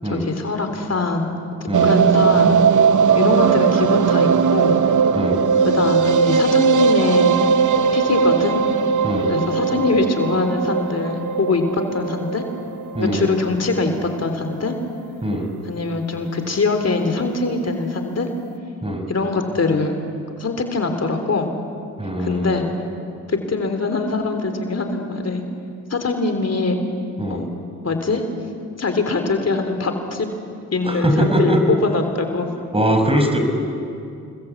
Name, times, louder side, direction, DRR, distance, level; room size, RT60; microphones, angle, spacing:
voice 1, 0.0-1.3 1.6-2.5 3.1-4.8 5.6-7.3 7.9-8.6 9.3-12.4 13.0-14.8 15.6-18.3 19.1-20.0 20.4-21.5 22.2-22.6 23.3-25.4 25.9-26.8 27.3-27.5 27.8-28.2 28.8-30.3 30.7-32.5, left 3 dB, 50° left, 6 dB, 3.4 m, -22 dB
sound 1, 1.7-13.9 14.1-14.2 14.5-14.6 14.8-14.9, right 6 dB, 65° right, 1.1 m, -18 dB
voice 2, 13.0-13.3 15.2-15.5 18.8-19.0 22.0-22.6 27.2-27.4 30.9-31.6 32.7-33.4, equal, 15° right, 5 dB, 5.5 m, -21 dB
28.0 x 21.5 x 8.3 m, 2.4 s
supercardioid pair, 50°, 33 cm